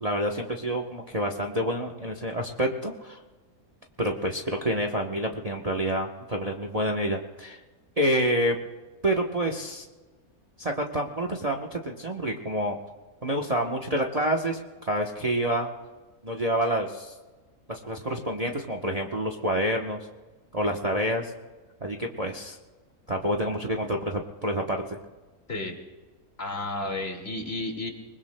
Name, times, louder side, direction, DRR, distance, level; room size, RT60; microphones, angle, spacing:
voice 1, 0.0-3.2 4.0-7.6 8.0-8.6 9.0-9.9 10.6-12.8 13.2-15.7 16.2-17.1 17.7-20.0 20.5-21.3 21.8-22.6 23.1-25.0, right 1 dB, 30° right, 2 dB, 0.9 m, -28 dB
voice 2, 26.4-27.9, left 2 dB, 45° left, 2 dB, 2.3 m, -32 dB
27.5 x 20.5 x 2.2 m, 1.3 s
omnidirectional pair, 1.5 m